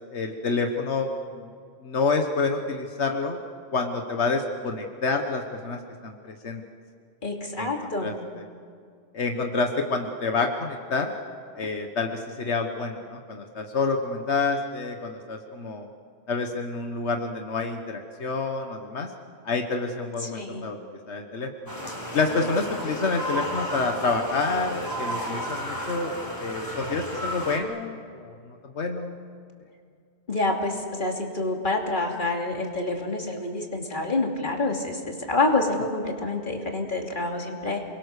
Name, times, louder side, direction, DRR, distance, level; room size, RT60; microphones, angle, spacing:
voice 1, 0.1-1.1 1.3-1.5 1.8-3.4 3.7-6.6 7.6-8.1 9.1-11.1 11.5-15.9 16.3-19.1 19.4-20.8 21.1-21.5 22.1-28.4 28.8-29.2, left 4 dB, 85° left, 4 dB, 1.6 m, -28 dB
voice 2, 7.2-8.1 20.2-20.7 22.4-22.5 30.3-37.8, left 2 dB, 45° left, 1 dB, 3.0 m, -27 dB
sound 1, 21.7-27.6, equal, 20° left, 4.2 m, -33 dB
30.0 x 22.0 x 6.7 m, 2.3 s
omnidirectional pair, 1.1 m